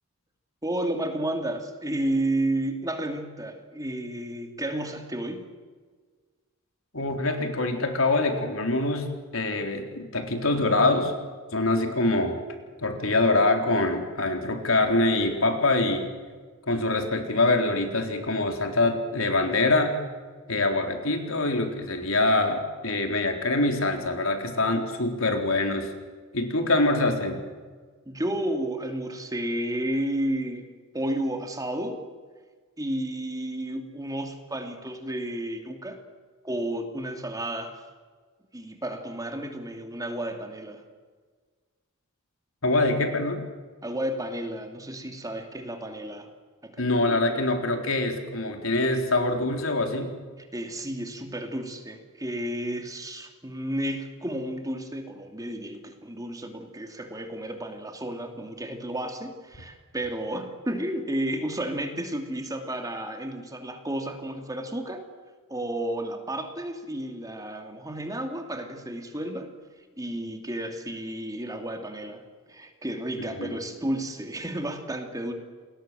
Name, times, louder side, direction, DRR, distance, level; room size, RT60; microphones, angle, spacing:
voice 1, 0.6-5.5 28.1-30.7 30.9-32.1 32.8-36.0 36.4-37.8 38.5-40.8 43.8-46.3 46.6-47.3 50.4-65.1 65.5-69.5 70.0-72.2 72.5-75.3, right 1 dB, 15° right, 5 dB, 2.7 m, -32 dB
voice 2, 6.9-11.2 11.5-12.4 12.8-16.1 16.7-20.0 20.5-25.9 26.3-27.4 42.6-43.5 46.8-50.1 73.4-73.6, left 2 dB, 70° left, 4 dB, 4.0 m, -24 dB
29.0 x 21.0 x 7.7 m, 1.5 s
head